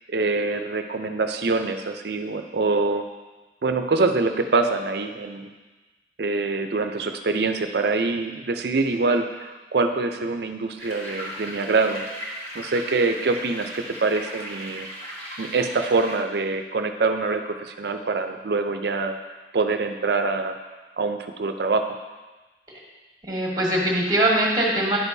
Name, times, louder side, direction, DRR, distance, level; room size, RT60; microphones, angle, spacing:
voice 1, 0.1-3.0 3.6-5.5 6.2-12.0 12.5-14.9 15.4-19.2 19.5-20.6 21.0-21.9, right 3 dB, 65° right, 7 dB, 0.5 m, -24 dB
sound 1, 10.8-16.2, equal, 35° left, 1.7 m, -37 dB
voice 2, 23.2-25.0, right 1 dB, 20° right, -3 dB, 1.5 m, -22 dB
10.0 x 6.4 x 2.7 m, 1.2 s
head